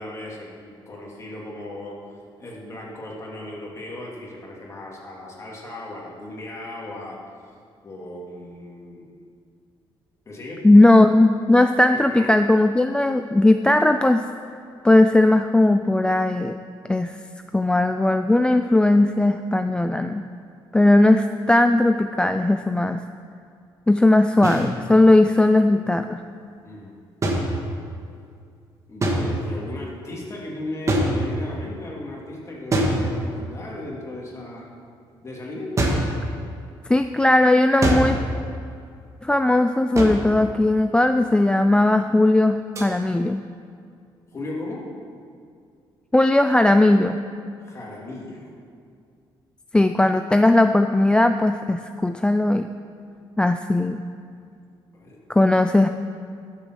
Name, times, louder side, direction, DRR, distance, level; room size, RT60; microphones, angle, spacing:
voice 1, 0.0-2.0 2.4-7.2 7.8-9.1 10.2-10.7 12.1-12.3 26.6-26.9 28.9-34.7 35.2-35.8 44.3-44.9 47.6-48.5 54.9-55.2, left 2 dB, 30° left, -3 dB, 2.9 m, -36 dB
voice 2, 10.6-14.2 14.8-16.6 16.9-17.2 17.5-20.2 20.7-23.0 23.9-26.2 36.9-38.2 39.2-43.4 46.1-47.2 49.7-52.7 53.4-54.0 55.3-55.9, left 2 dB, 10° left, 8 dB, 0.4 m, -18 dB
sound 1, 24.4-24.7 27.2-28.0 29.0-29.6 30.9-31.6 32.7-33.6 35.8-36.2 37.8-38.3 40.0-40.4 42.8-42.9, right 1 dB, 35° right, 1.9 m, -24 dB
12.5 x 7.5 x 6.3 m, 2.3 s
cardioid pair, 105°, 9 cm